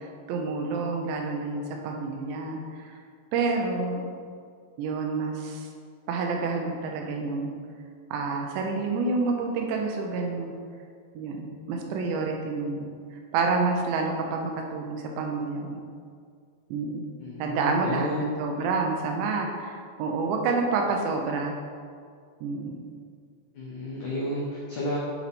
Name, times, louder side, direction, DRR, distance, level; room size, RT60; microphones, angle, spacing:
voice 1, 0.0-2.9 3.3-4.1 4.8-5.7 6.1-7.5 8.1-10.5 11.1-15.8 16.7-17.1 17.4-21.6 22.4-22.7, right 4 dB, 80° right, 2 dB, 3.0 m, -28 dB
voice 2, 17.2-18.3 23.5-25.0, left 1 dB, 80° left, -5 dB, 1.7 m, -32 dB
8.2 x 7.3 x 4.3 m, 2.2 s
omnidirectional pair, 5.3 m